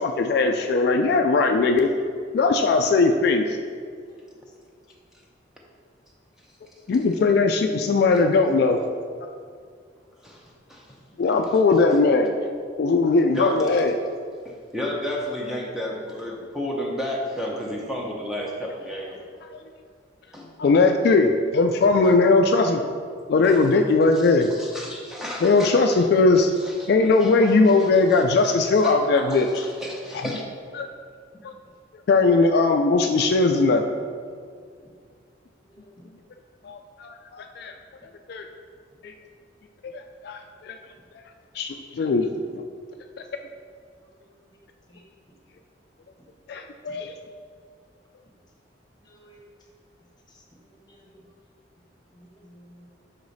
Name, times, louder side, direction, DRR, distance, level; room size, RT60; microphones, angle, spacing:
voice 1, 0.0-1.9 2.3-3.6 6.9-8.8 11.2-12.4 12.8-14.0 20.6-22.8 23.3-24.5 25.4-26.5 26.9-29.6 30.1-30.2 30.8-30.9 31.4-31.5 32.1-33.8 36.6-37.7 38.3-38.4 39.0-39.1 40.2-40.8 41.5-42.3 46.5-47.1, left 3 dB, 60° left, 4 dB, 0.3 m, -19 dB
voice 2, 10.2-11.2 13.3-13.7 14.4-19.2 20.3-20.5 22.0-22.2 23.4-23.7 24.2-26.0 26.6-27.5 27.8-28.2 28.8-30.4, left 1 dB, 5° right, -3 dB, 0.7 m, -33 dB
voice 3, 49.0-49.4 50.3-50.4 50.7-51.1 52.1-52.9, equal, 25° left, -2 dB, 1.1 m, -53 dB
5.7 x 4.8 x 4.0 m, 2.1 s
head